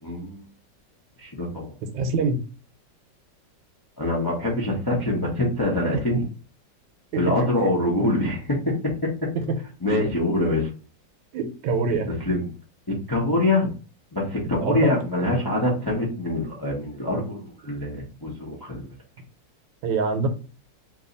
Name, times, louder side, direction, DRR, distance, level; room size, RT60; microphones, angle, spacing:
voice 1, 0.0-0.4 1.2-1.7 4.0-6.2 7.1-9.1 9.8-10.7 12.2-12.5 12.9-13.7 14.1-18.9, left 1 dB, 30° left, -3 dB, 0.4 m, -24 dB
voice 2, 1.9-2.4 7.1-7.4 9.5-9.6 9.9-10.0 11.3-12.1 14.6-14.8 19.8-20.3, right 4 dB, 85° right, 7 dB, 1.4 m, -24 dB
2.9 x 2.7 x 3.8 m, 0.35 s
omnidirectional pair, 2.0 m